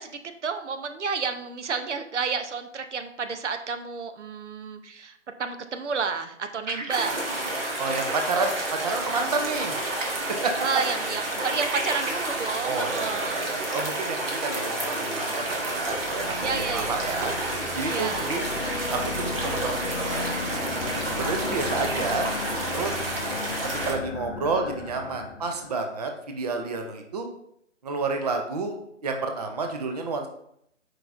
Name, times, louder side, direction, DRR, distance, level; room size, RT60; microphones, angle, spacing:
voice 1, 0.0-7.2 7.7-7.8 10.6-13.5 16.4-17.1 17.8-18.4, right 5 dB, 65° right, 8 dB, 0.8 m, -31 dB
sound 1, 6.7-8.0 8.3-8.5 8.8-10.2 10.6-12.6, right 2 dB, 90° right, 1.2 m, -36 dB
sound 2, 6.9-23.9, right 2 dB, 50° right, 1.7 m, -30 dB
voice 2, 7.8-9.8 10.3-10.6 12.6-17.3 17.7-18.5 18.9-20.8 21.1-22.3 22.7-23.3 23.8-27.3 27.8-28.8 29.0-30.3, right 3 dB, 30° right, 4 dB, 0.6 m, -30 dB
sound 3, 15.4-25.9, left 4 dB, 55° left, 0.6 m, -36 dB
7.5 x 4.9 x 2.5 m, 0.72 s
figure-of-eight pair, 150°, 38 cm